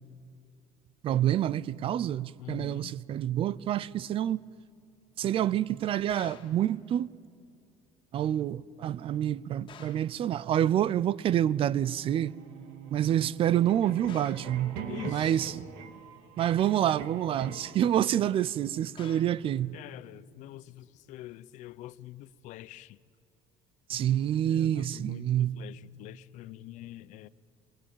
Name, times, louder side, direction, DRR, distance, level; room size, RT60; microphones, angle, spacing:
voice 1, 1.0-4.4 5.2-7.1 8.1-12.4 12.9-15.7 16.4-19.8 23.9-25.6, right 11 dB, 45° right, 0.5 m, -27 dB
voice 2, 2.4-3.0 14.9-15.6 19.7-23.0 24.4-27.3, left 15 dB, 65° left, 0.7 m, -45 dB
sound 1, 6.1-6.6 9.7-10.2 14.1-14.6 19.0-19.4, left 8 dB, 35° left, 2.0 m, -49 dB
sound 2, 11.4-17.8, right 6 dB, 90° right, 2.3 m, -43 dB
27.5 x 20.5 x 8.9 m
cardioid pair, 130°, 13 cm